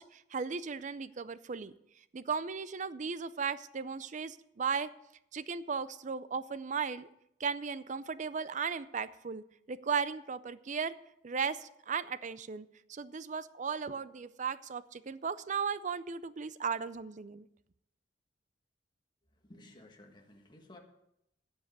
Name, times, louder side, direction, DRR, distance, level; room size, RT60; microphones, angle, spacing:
voice 1, 0.0-1.7 2.1-4.9 5.3-7.1 7.4-11.0 11.2-17.5, right 6 dB, 40° right, 15 dB, 0.5 m, -36 dB
voice 2, 19.3-20.8, left 1 dB, 25° left, 2 dB, 1.7 m, -55 dB
16.0 x 5.6 x 6.5 m, 0.80 s
head